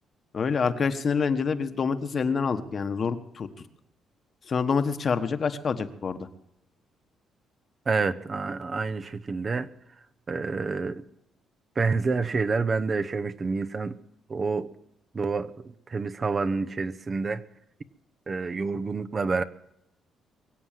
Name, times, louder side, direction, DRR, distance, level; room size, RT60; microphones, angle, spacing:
voice 1, 0.3-3.5 4.5-6.3, left 5 dB, 45° left, 9 dB, 1.3 m, -27 dB
voice 2, 7.9-9.7 10.3-11.0 11.8-14.0 14.3-14.7 15.1-15.5 15.9-17.4 18.3-19.4, right 4 dB, 35° right, 11 dB, 0.9 m, -28 dB
23.0 x 8.0 x 7.6 m, 0.83 s
cardioid pair, 90°, 0 cm